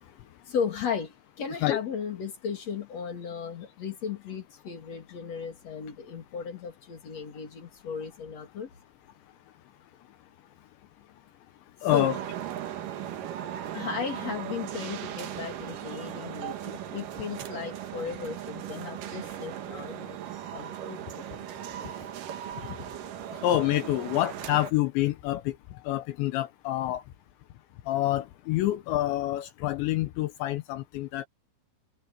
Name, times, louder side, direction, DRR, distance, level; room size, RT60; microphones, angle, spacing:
voice 1, 0.0-8.7 11.9-12.1 13.7-20.2 20.5-21.3, left 6 dB, 40° left, 2.8 m, -36 dB
voice 2, 11.8-12.2 23.4-25.6 25.8-27.0 27.9-31.3, left 14 dB, 75° left, 2.8 m, -27 dB
sound 1, 11.9-24.7, right 11 dB, 70° right, 2.1 m, -38 dB
omnidirectional pair, 5.9 m